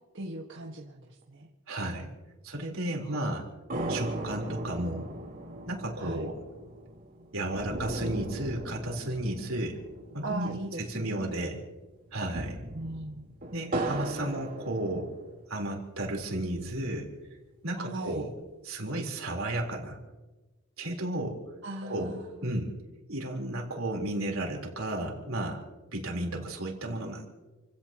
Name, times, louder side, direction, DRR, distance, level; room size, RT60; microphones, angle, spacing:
voice 1, 0.1-1.5 3.0-3.5 6.0-6.3 10.2-11.3 12.7-13.2 17.8-18.3 21.6-22.4, right 2 dB, 60° right, -1 dB, 1.6 m, -39 dB
voice 2, 1.7-2.1 2.4-3.5 3.9-5.1 5.7-6.4 7.3-9.8 10.1-11.6 12.1-12.6 13.5-15.1 15.5-17.1 17.6-18.3 18.6-20.0 20.8-21.4 21.8-22.7 23.1-25.6 25.9-27.3, right 1 dB, 75° right, 0 dB, 3.9 m, -33 dB
sound 1, 3.7-11.3 11.5-11.6 12.1-15.5 16.0-17.0, right 1 dB, 45° right, 3.9 m, -38 dB
29.5 x 16.5 x 3.0 m, 1.2 s
head